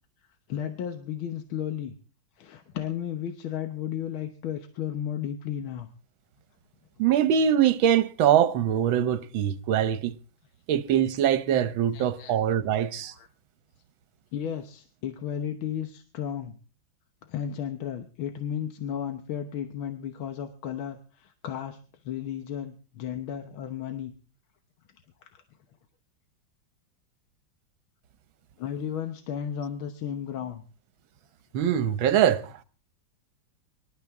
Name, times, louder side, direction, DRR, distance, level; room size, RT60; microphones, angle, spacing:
voice 1, 0.5-2.0 2.4-5.9 11.9-12.4 13.0-13.3 14.3-16.6 17.2-21.8 22.0-24.1 25.2-25.4 28.6-30.6, left 9 dB, 85° left, 1.9 m, -34 dB
voice 2, 7.0-10.1 10.7-13.1 31.5-32.6, right 9 dB, 80° right, 1.7 m, -23 dB
24.5 x 12.0 x 3.6 m
omnidirectional pair, 2.2 m